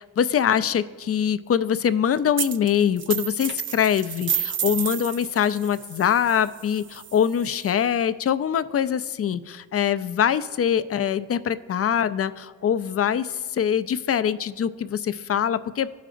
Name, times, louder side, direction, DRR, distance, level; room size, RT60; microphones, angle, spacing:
voice 1, 0.0-16.0, left 8 dB, 35° left, 14 dB, 0.4 m, -23 dB
sound 1, 2.4-2.7 3.0-7.7, right 8 dB, 30° right, 0.4 m, -31 dB
15.0 x 5.1 x 2.5 m, 1.5 s
supercardioid pair, 50°, 40 cm